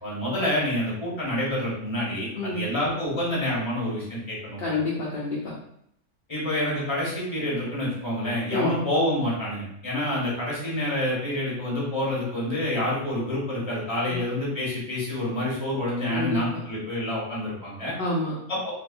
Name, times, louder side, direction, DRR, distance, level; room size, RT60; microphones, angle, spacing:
voice 1, 0.0-4.8 6.3-17.9 18.5-18.7, left 1 dB, 20° left, -6 dB, 1.2 m, -28 dB
voice 2, 4.6-5.6 8.5-8.7 14.1-14.2 16.1-16.6 18.0-18.4, left 3 dB, 60° left, -4 dB, 0.7 m, -28 dB
3.3 x 2.9 x 2.4 m, 0.72 s
omnidirectional pair, 1.5 m